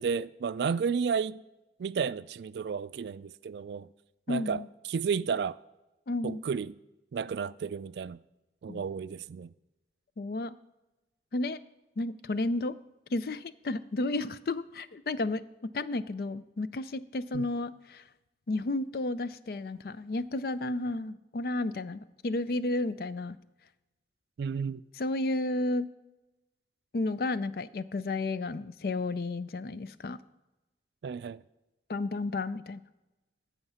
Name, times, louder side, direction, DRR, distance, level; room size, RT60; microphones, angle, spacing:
voice 1, 0.0-1.4 1.8-3.9 4.3-4.6 4.9-5.6 6.2-6.7 7.1-8.2 8.6-9.5 17.3-17.5 24.4-24.8 31.0-31.4, right 6 dB, 70° right, 0.3 m, -32 dB
voice 2, 4.3-4.7 6.1-6.4 8.7-8.8 10.2-10.6 11.3-11.6 12.0-12.8 13.1-18.0 18.5-23.4 25.0-25.9 26.9-30.2 31.9-32.8, left 2 dB, 55° left, 0.4 m, -32 dB
15.0 x 5.8 x 5.6 m
head